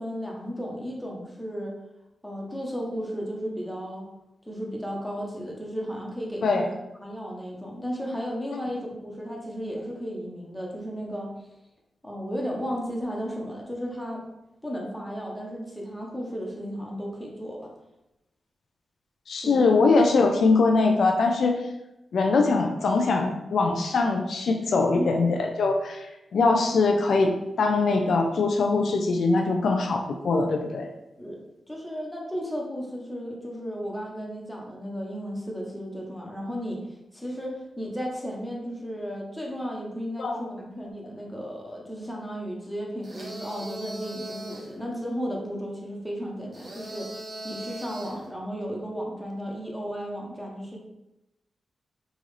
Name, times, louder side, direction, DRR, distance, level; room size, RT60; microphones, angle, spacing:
voice 1, 0.0-1.8 2.2-4.1 4.5-11.3 12.0-14.2 14.6-17.7 19.4-19.8 24.7-25.1 31.2-31.4 31.7-47.1 47.4-50.8, equal, 5° left, -1 dB, 1.0 m, -34 dB
voice 2, 19.3-21.6 22.1-26.1 26.3-30.9 40.2-40.3, left 3 dB, 75° left, 3 dB, 0.3 m, -22 dB
sound 1, 43.0-44.7 46.5-48.3, right 1 dB, 55° right, 1.3 m, -39 dB
3.7 x 2.5 x 3.2 m, 0.91 s
cardioid pair, 55°, 0 cm